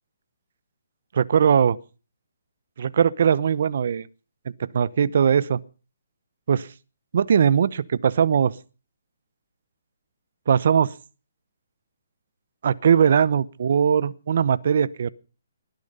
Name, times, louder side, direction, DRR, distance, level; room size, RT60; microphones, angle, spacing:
voice 1, 1.1-1.8 2.8-4.1 4.7-5.6 6.5-6.7 7.1-8.5 10.5-10.9 12.6-15.1, right 7 dB, 60° right, 0.8 m, -20 dB
20.5 x 10.5 x 5.4 m
hypercardioid pair, 150°, 0 cm